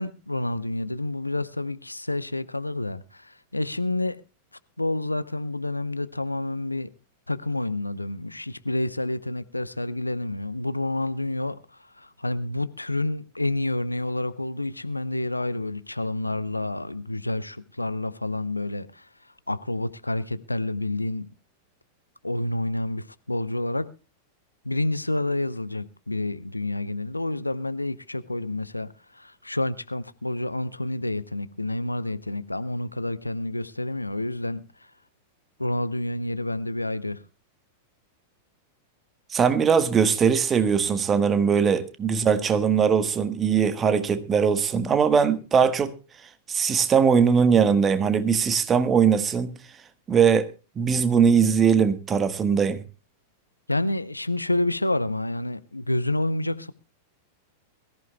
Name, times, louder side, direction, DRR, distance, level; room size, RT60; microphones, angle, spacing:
voice 1, 0.0-4.2 4.8-6.9 7.3-19.1 19.5-21.3 22.2-23.9 24.6-34.6 35.6-37.2 53.7-56.7, left 2 dB, 85° left, 0.7 m, -29 dB
voice 2, 39.3-45.9 46.5-49.5 50.1-50.5 50.8-52.8, right 6 dB, 25° right, 1.3 m, -20 dB
22.5 x 14.5 x 2.2 m
figure-of-eight pair, 95°, 0 cm